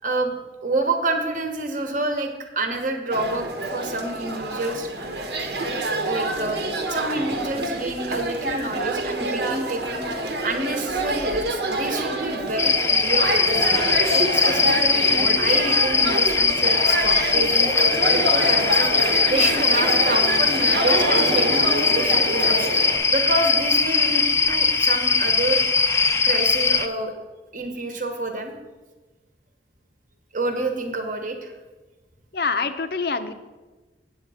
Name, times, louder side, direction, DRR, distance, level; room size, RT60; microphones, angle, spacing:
voice 1, 0.0-0.4 0.6-4.9 6.0-6.6 6.9-10.0 10.4-13.7 14.1-25.6 26.2-27.1 27.5-28.5 30.3-31.5, right 2 dB, 45° right, 5 dB, 1.1 m, -28 dB
sound 1, 3.1-23.0, right 1 dB, 75° right, 1.2 m, -27 dB
sound 2, 12.6-26.9, left 4 dB, 15° left, 0.3 m, -20 dB
voice 2, 32.3-33.3, left 4 dB, 55° left, 10 dB, 0.6 m, -25 dB
8.2 x 7.9 x 4.9 m, 1.2 s
head